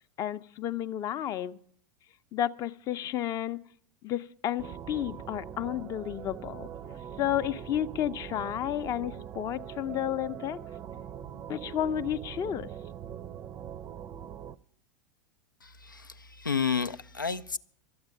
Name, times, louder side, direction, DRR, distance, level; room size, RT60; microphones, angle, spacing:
voice 1, 0.2-1.6 2.3-3.6 4.0-10.6 11.5-12.7, left 11 dB, 35° left, 0.6 m, -32 dB
sound 1, 4.6-14.6, right 9 dB, 30° right, 0.5 m, -42 dB
voice 2, 15.6-17.6, left 6 dB, 90° left, 0.5 m, -31 dB
12.0 x 8.8 x 8.8 m
figure-of-eight pair, 85°, 10 cm